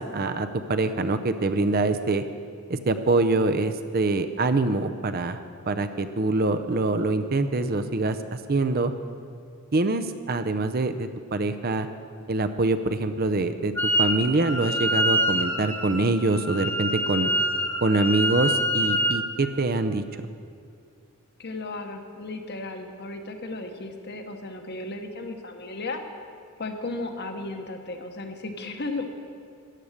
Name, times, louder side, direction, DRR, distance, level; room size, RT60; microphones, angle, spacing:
voice 1, 0.0-2.2 2.7-5.4 5.7-8.2 8.5-8.9 9.7-11.9 12.3-13.7 14.0-17.3 17.8-20.0, right 2 dB, 40° right, 9 dB, 0.6 m, -24 dB
Wind instrument woodwind instrument, 13.8-14.2 14.4-19.2, equal, 10° left, 0.8 m, -25 dB
voice 2, 21.4-26.0 26.6-29.1, left 2 dB, 45° left, 5 dB, 1.2 m, -35 dB
14.0 x 10.0 x 6.5 m, 2.3 s
head